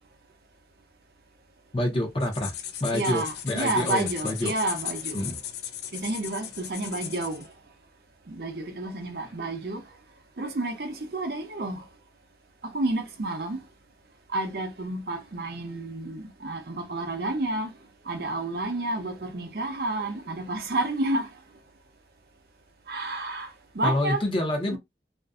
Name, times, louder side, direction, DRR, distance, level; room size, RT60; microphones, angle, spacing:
voice 1, 1.7-2.5 2.8-4.5 5.1-5.4 23.8-24.8, left 1 dB, 30° left, 0.6 m, -27 dB
sound 1, 2.2-7.5, left 10 dB, 65° left, 0.4 m, -36 dB
voice 2, 2.9-5.2 5.9-7.4 8.3-9.8 10.4-11.8 12.7-13.6 14.3-17.7 18.1-21.3 22.9-23.5 23.8-24.2 24.7-24.8, right 2 dB, 55° right, 0.6 m, -30 dB
2.5 x 2.2 x 2.4 m
head